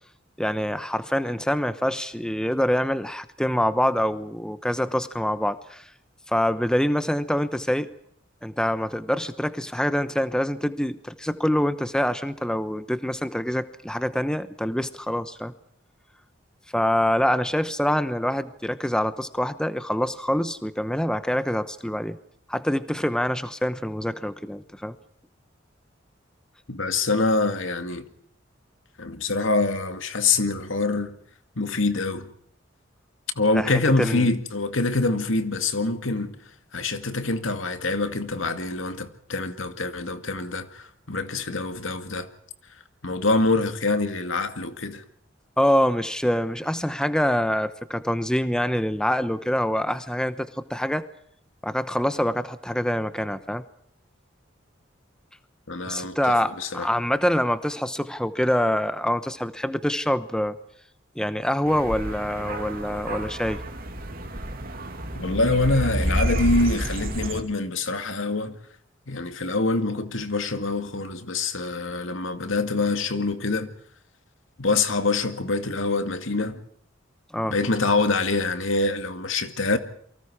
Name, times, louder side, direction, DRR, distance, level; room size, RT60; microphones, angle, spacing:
voice 1, 0.4-5.9 6.3-7.9 8.4-15.5 16.7-22.2 22.5-25.0 33.5-34.3 45.6-51.0 51.6-53.6 55.9-60.6 61.2-63.6 77.3-77.6, equal, 5° left, 0.9 m, -25 dB
voice 2, 26.7-28.1 29.0-31.2 31.6-32.3 33.4-36.4 36.7-42.3 43.0-45.0 55.7-56.9 65.2-68.6 69.1-73.7 74.6-76.6 77.5-79.8, left 3 dB, 80° left, 2.2 m, -25 dB
sound 1, 61.7-67.4, right 1 dB, 50° right, 2.8 m, -29 dB
29.0 x 24.0 x 4.9 m
head